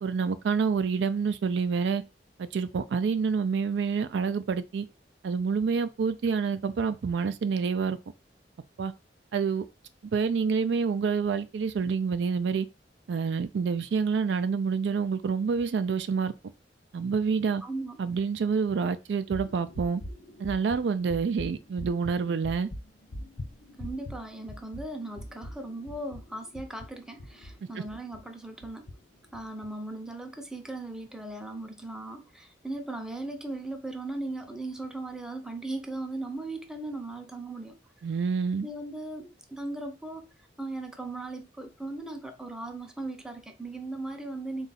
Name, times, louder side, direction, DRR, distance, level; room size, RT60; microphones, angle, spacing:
voice 1, 0.0-2.0 2.4-4.9 5.2-8.0 8.8-8.9 9.3-9.6 10.1-12.7 13.1-16.3 16.9-17.6 18.0-20.0 20.4-22.7 38.0-38.7, right 5 dB, 75° right, 0.4 m, -27 dB
voice 2, 17.6-18.0 23.8-28.9 29.3-37.8 38.6-40.3 40.6-44.7, right 2 dB, 5° right, 0.5 m, -38 dB
sound 1, 19.3-28.3 28.6-28.9 29.3-29.7, left 1 dB, 65° left, 0.6 m, -42 dB
3.8 x 2.4 x 4.1 m
head